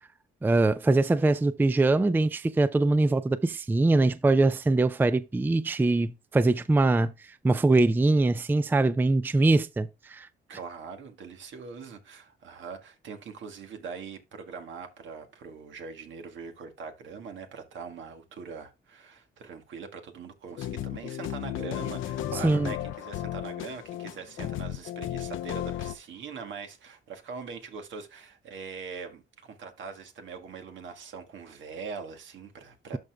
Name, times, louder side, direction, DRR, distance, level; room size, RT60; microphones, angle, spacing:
voice 1, 0.4-7.1 7.4-10.3 22.4-22.7, right 2 dB, 10° right, 0.4 m, -23 dB
voice 2, 10.5-33.0, right 5 dB, 70° right, 1.7 m, -42 dB
sound 1, 20.5-25.9, left 12 dB, 80° left, 0.6 m, -34 dB
12.5 x 5.0 x 2.3 m
cardioid pair, 90°, 20 cm